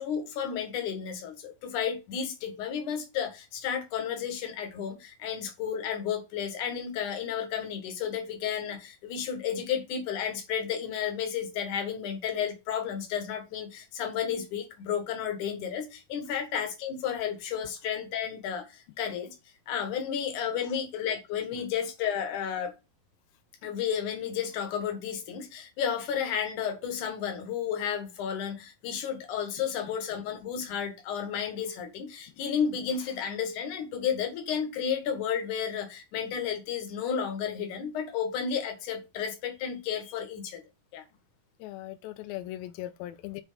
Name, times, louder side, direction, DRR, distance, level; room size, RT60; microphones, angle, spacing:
voice 1, 0.0-19.4 19.7-22.7 23.6-40.6 40.9-41.0, left 8 dB, 60° left, 2.6 m, -32 dB
voice 2, 41.6-43.4, left 15 dB, 85° left, 2.1 m, -39 dB
8.0 x 4.3 x 5.1 m
omnidirectional pair, 4.8 m